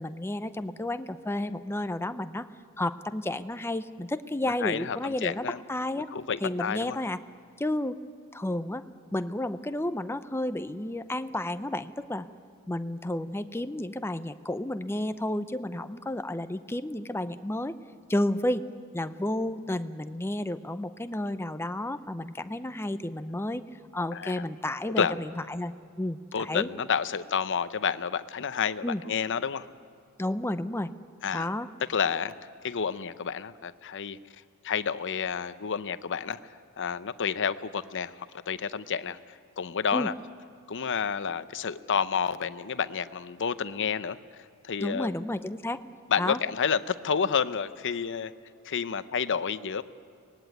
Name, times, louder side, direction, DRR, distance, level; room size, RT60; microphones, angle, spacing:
voice 1, 0.0-2.5 2.8-6.1 6.4-7.2 7.6-8.0 8.3-8.8 9.1-12.3 12.7-17.7 18.1-18.6 18.9-23.6 23.9-26.7 28.8-29.0 30.2-30.9 31.3-31.7 39.9-40.1 44.8-45.8 46.2-46.4, left 1 dB, 10° left, 11 dB, 0.7 m, -31 dB
voice 2, 4.6-5.6 6.1-7.0 24.1-24.4 25.0-25.1 26.3-29.7 31.2-31.5 31.9-32.3 32.6-34.2 34.6-36.4 36.8-39.2 39.6-40.1 40.7-44.2 44.6-45.1 46.1-48.3 48.6-49.8, left 6 dB, 55° left, 13 dB, 0.8 m, -29 dB
24.0 x 19.5 x 9.2 m, 2.3 s
head